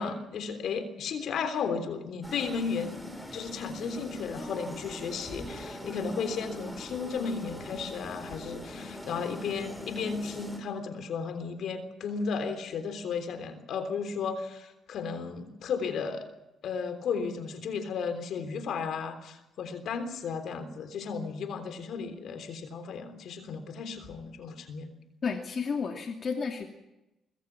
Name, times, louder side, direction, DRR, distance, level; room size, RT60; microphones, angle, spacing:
voice 1, 0.0-3.0 3.3-16.3 16.6-24.9, left 5 dB, 65° left, 9 dB, 3.5 m, -34 dB
sound 1, 2.2-10.6, left 1 dB, 5° left, 7.6 m, -42 dB
voice 2, 25.2-26.7, left 5 dB, 50° left, 4 dB, 2.7 m, -32 dB
25.0 x 22.5 x 6.0 m, 0.93 s
hypercardioid pair, 45°, 0 cm